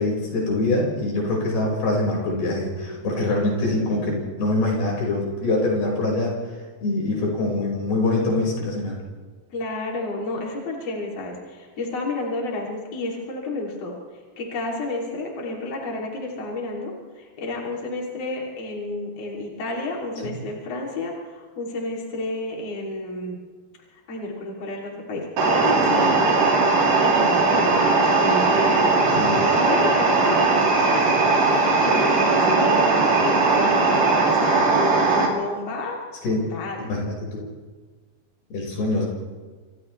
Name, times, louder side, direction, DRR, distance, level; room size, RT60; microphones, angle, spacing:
voice 1, 0.0-6.3 6.8-9.0 20.2-20.4 29.1-29.4 36.2-36.4 36.8-37.5 38.5-39.1, left 2 dB, 85° left, -2 dB, 7.3 m, -24 dB
voice 2, 2.0-3.9 9.5-14.0 14.4-23.4 23.9-31.0 31.4-32.9 33.2-33.8 34.3-34.7 35.1-36.0 36.3-36.9, left 2 dB, 45° left, -2 dB, 4.0 m, -31 dB
sound 1, 25.4-35.3, right 3 dB, 65° right, 4.6 m, -19 dB
29.5 x 27.0 x 3.3 m, 1.4 s
omnidirectional pair, 4.2 m